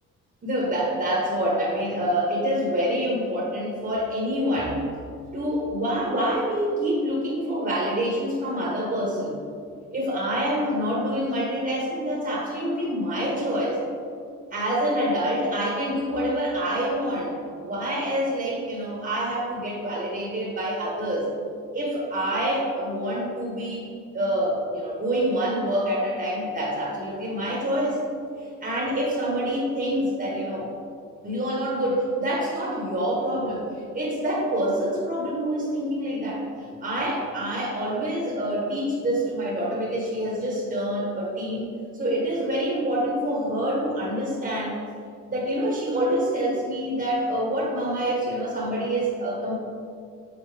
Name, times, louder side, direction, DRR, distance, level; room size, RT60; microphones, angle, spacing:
voice 1, 0.4-4.8 5.3-9.4 9.9-13.8 14.5-17.4 17.6-21.3 21.7-23.9 24.1-28.0 28.6-30.7 31.2-33.6 33.9-44.8 45.2-49.5, equal, 35° right, -4 dB, 1.5 m, -26 dB
7.1 x 4.0 x 3.5 m, 2.4 s
cardioid pair, 90°, 30 cm